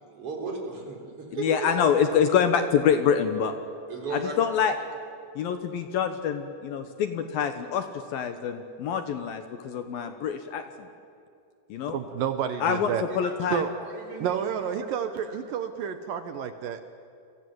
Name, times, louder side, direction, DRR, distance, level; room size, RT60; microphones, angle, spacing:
voice 1, 0.1-2.1 3.9-4.4 11.8-11.9 13.2-15.4, right 3 dB, 30° right, 1 dB, 4.9 m, -37 dB
voice 2, 1.4-3.5 4.1-4.8 5.4-7.9 8.1-10.6 11.7-12.0 12.6-13.6, left 7 dB, 70° left, 8 dB, 2.5 m, -25 dB
voice 3, 11.9-13.0 13.5-13.7 14.2-16.8, right 8 dB, 70° right, 9 dB, 2.2 m, -30 dB
30.0 x 24.0 x 7.9 m, 2.5 s
omnidirectional pair, 5.1 m